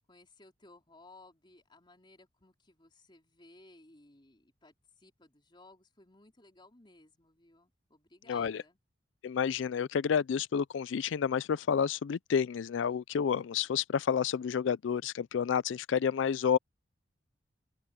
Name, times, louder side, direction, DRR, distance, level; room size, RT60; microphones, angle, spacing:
voice 1, 0.1-8.8, left 2 dB, 25° left, 3.7 m, -59 dB
voice 2, 9.2-16.6, left 7 dB, 85° left, 0.4 m, -30 dB
open air
head